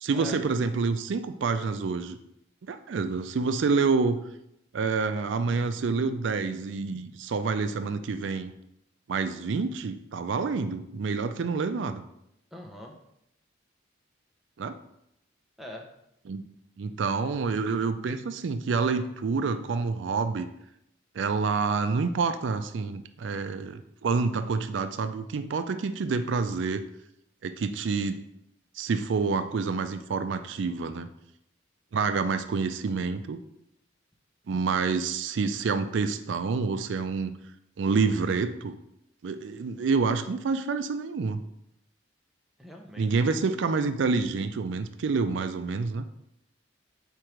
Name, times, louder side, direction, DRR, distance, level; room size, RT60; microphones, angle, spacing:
voice 1, 0.0-2.2 2.6-4.2 4.7-8.5 9.1-12.0 14.6-14.8 16.3-16.4 16.8-20.5 21.2-26.8 27.4-28.2 28.8-31.1 31.9-33.4 34.5-37.4 37.8-38.8 39.2-41.4 43.0-46.0, right 4 dB, 75° right, 10 dB, 0.4 m, -28 dB
voice 2, 12.5-13.0 15.6-15.9 42.6-43.4, left 1 dB, ahead, 0 dB, 0.7 m, -42 dB
4.6 x 4.4 x 5.0 m, 0.80 s
head